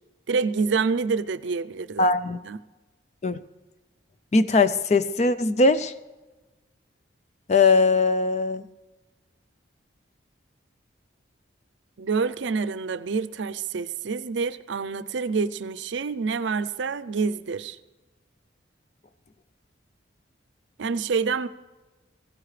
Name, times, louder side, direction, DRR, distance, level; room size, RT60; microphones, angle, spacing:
voice 1, 0.3-2.1 2.4-2.6 12.0-17.8 20.8-21.5, right 5 dB, 70° right, 0.5 m, -27 dB
voice 2, 2.0-2.4 3.2-3.4 4.3-5.9 7.5-8.6, left 3 dB, 35° left, 0.4 m, -20 dB
23.0 x 15.5 x 3.3 m
head